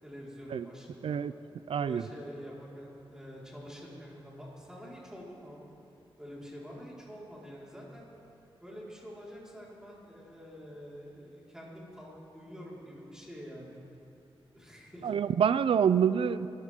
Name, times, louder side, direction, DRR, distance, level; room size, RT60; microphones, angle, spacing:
voice 1, 0.0-1.2 1.8-5.6 6.2-8.1 8.6-13.8 14.5-15.1, equal, 5° right, -6 dB, 4.7 m, -47 dB
voice 2, 1.0-1.3 1.7-2.0 15.0-16.5, right 7 dB, 70° right, 15 dB, 0.5 m, -26 dB
24.0 x 14.5 x 3.7 m, 2.7 s
cardioid pair, 85°, 9 cm